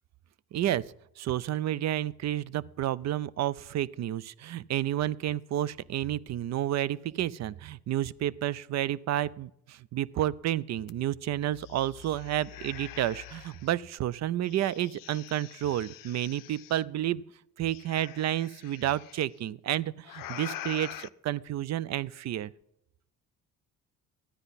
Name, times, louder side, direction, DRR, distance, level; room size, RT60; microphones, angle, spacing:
voice 1, 0.5-0.8 1.2-17.2 17.6-22.5, right 12 dB, 50° right, 20 dB, 0.5 m, -30 dB
sound 1, 10.9-11.0 11.3-13.7 14.4-16.8 17.7-19.2 20.0-21.1, left 13 dB, 65° left, 0.6 m, -45 dB
14.0 x 9.8 x 4.1 m, 0.82 s
supercardioid pair, 75°, 36 cm